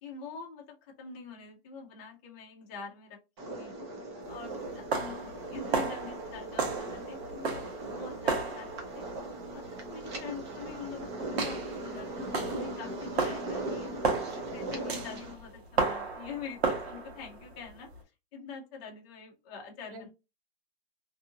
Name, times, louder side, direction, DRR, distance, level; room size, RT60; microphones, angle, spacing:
voice 1, 0.0-3.9 4.3-9.1 9.5-13.9 14.5-17.9 18.3-20.1, left 5 dB, 20° left, 0 dB, 0.6 m, -45 dB
sound 1, 3.4-15.3, right 2 dB, 25° right, 0.6 m, -39 dB
sound 2, 4.3-18.0, right 4 dB, 85° right, 1.2 m, -34 dB
voice 2, 14.0-14.7 19.9-20.1, right 1 dB, 60° right, 1 dB, 1.4 m, -50 dB
2.7 x 2.5 x 2.6 m, 0.27 s
hypercardioid pair, 165°, 31 cm